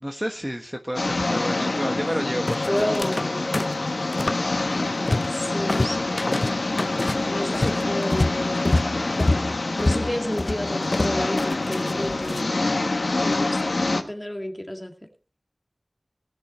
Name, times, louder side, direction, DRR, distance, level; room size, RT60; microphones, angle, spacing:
voice 1, 0.0-3.0, equal, 15° right, 4 dB, 1.4 m, -30 dB
sound 1, 1.0-14.0, left 2 dB, 90° left, 1.2 m, -26 dB
sound 2, 2.5-3.3 3.5-4.4 4.7-5.4 5.7-12.4, left 2 dB, 55° left, 0.5 m, -26 dB
voice 2, 2.7-3.5 5.3-6.2 7.3-8.6 9.3-12.7 13.2-13.6 13.9-14.9, left 1 dB, 20° left, 4 dB, 2.3 m, -31 dB
19.0 x 6.9 x 4.3 m, 0.38 s
wide cardioid pair, 40°, 0 cm